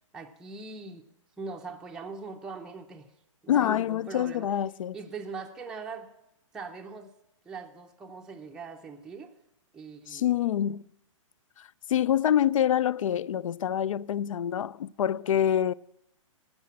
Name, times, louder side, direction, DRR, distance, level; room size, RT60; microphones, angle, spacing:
voice 1, 0.1-1.1 1.4-3.1 3.4-4.5 4.9-6.1 6.5-7.1 7.4-9.3 9.7-10.3, right 4 dB, 5° right, 0.5 m, -41 dB
voice 2, 3.5-5.0 10.1-10.9 11.6-15.7, left 10 dB, 75° left, 0.4 m, -26 dB
14.0 x 7.6 x 8.4 m
hypercardioid pair, 160°, 17 cm